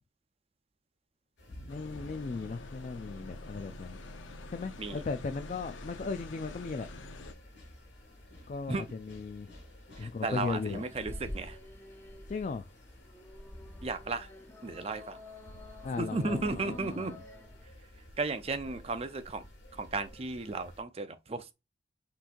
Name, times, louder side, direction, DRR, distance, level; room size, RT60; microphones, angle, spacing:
sound 1, 1.4-20.8, left 1 dB, 60° left, 1.8 m, -51 dB
voice 1, 1.6-4.0 4.5-6.9 8.5-9.5 10.0-10.8 12.3-12.7 15.8-17.2, left 4 dB, 40° left, 0.3 m, -37 dB
sound 2, 1.7-7.3, left 2 dB, 80° left, 0.7 m, -46 dB
voice 2, 10.0-11.6 13.8-14.3 14.6-15.2 16.0-17.1 18.2-19.5 19.7-21.5, right 3 dB, 30° right, 0.5 m, -34 dB
sound 3, 10.3-17.7, left 2 dB, 10° left, 0.7 m, -51 dB
5.7 x 3.1 x 2.5 m
head